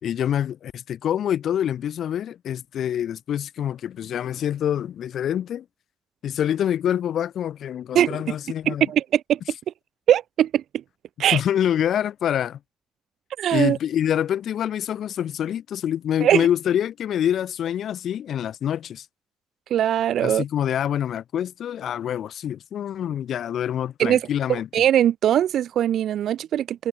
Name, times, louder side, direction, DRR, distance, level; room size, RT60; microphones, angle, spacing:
voice 1, 0.0-5.6 6.2-8.9 11.3-12.6 13.5-19.1 20.2-24.7, left 10 dB, 70° left, 4.6 m, -26 dB
voice 2, 7.9-8.3 8.7-9.4 10.1-10.6 11.2-11.4 13.4-13.8 16.2-16.5 19.7-20.4 24.0-24.2 24.7-26.9, right 11 dB, 85° right, 1.0 m, -21 dB
wide cardioid pair, 155°, 0 cm